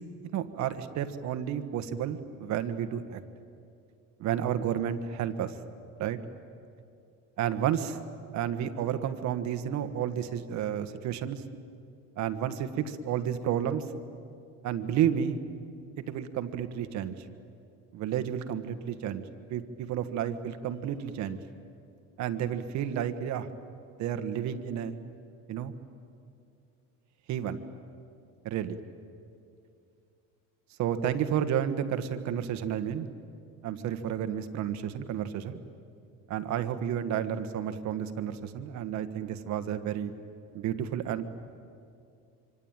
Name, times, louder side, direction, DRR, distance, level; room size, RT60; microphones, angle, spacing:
voice 1, 0.2-3.2 4.2-5.6 6.0-6.2 7.4-8.0 8.3-11.4 12.2-13.8 14.6-15.4 16.1-17.2 17.9-19.2 19.5-21.4 22.2-23.5 24.0-24.9 25.5-25.7 27.3-27.6 28.4-28.8 30.8-33.1 33.6-35.6 36.3-40.1 40.5-41.5, right 9 dB, 55° right, 9 dB, 1.5 m, -31 dB
25.5 x 25.5 x 9.0 m, 2.5 s
cardioid pair, 160°, 34 cm